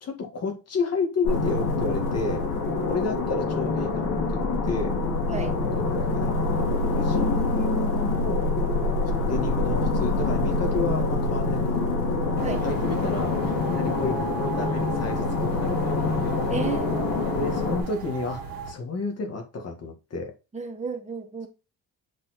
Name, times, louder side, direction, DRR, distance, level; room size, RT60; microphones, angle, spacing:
voice 1, 0.0-2.5 2.9-4.9 5.7-6.3 6.9-8.5 9.3-12.1 12.6-16.5 17.3-20.3, left 4 dB, 40° left, 2.0 m, -31 dB
sound 1, 1.2-17.8, left 3 dB, 80° left, 2.6 m, -25 dB
sound 2, 12.4-18.7, right 5 dB, 60° right, 2.0 m, -37 dB
voice 2, 16.5-17.4 20.5-21.5, right 5 dB, 20° right, 1.3 m, -33 dB
7.4 x 4.4 x 4.3 m
cardioid pair, 155°, 37 cm